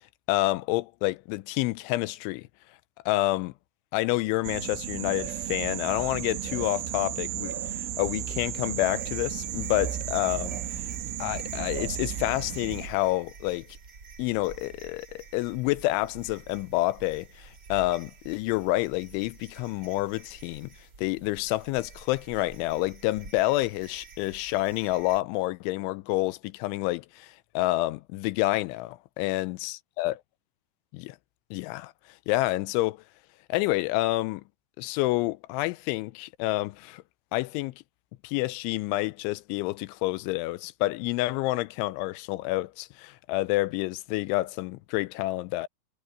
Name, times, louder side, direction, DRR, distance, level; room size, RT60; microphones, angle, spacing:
voice 1, 0.3-2.5 3.1-3.5 3.9-10.8 11.2-13.7 14.2-20.7 21.0-30.2 30.9-31.2 31.5-31.9 32.3-33.0 33.5-34.4 34.8-37.0 37.3-37.7 38.2-45.7, left 18 dB, 85° left, 3.0 m, -28 dB
sound 1, 4.4-12.9, right 11 dB, 85° right, 4.1 m, -34 dB
sound 2, 8.8-25.2, right 4 dB, 30° right, 2.0 m, -49 dB
omnidirectional pair, 5.4 m